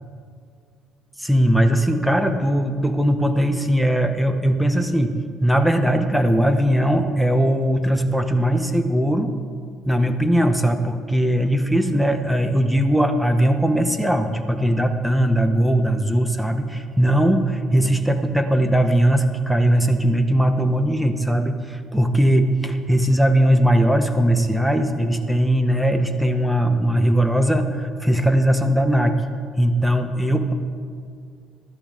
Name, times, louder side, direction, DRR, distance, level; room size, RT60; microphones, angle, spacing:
voice 1, 1.2-9.3 9.9-29.2 29.6-30.5, right 1 dB, ahead, 6 dB, 1.7 m, -19 dB
20.0 x 13.5 x 3.8 m, 2.2 s
hypercardioid pair, 55°, 0 cm